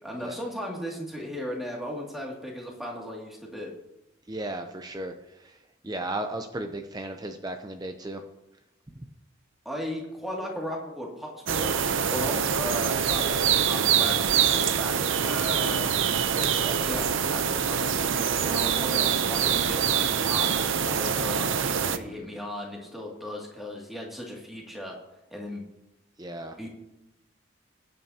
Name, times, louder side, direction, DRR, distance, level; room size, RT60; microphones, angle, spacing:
voice 1, 0.0-3.7 9.6-15.0 15.2-15.8 16.8-25.0 25.3-25.6 26.6-26.7, left 1 dB, ahead, -3 dB, 2.4 m, -36 dB
voice 2, 4.3-5.1 5.4-5.6 5.8-8.2 13.3-13.4 16.3-16.8 21.9-22.3 26.2-26.7, right 1 dB, 20° right, 6 dB, 0.6 m, -35 dB
sound 1, 11.5-22.0, right 7 dB, 75° right, 0.7 m, -25 dB
21.0 x 9.0 x 2.9 m, 0.93 s
head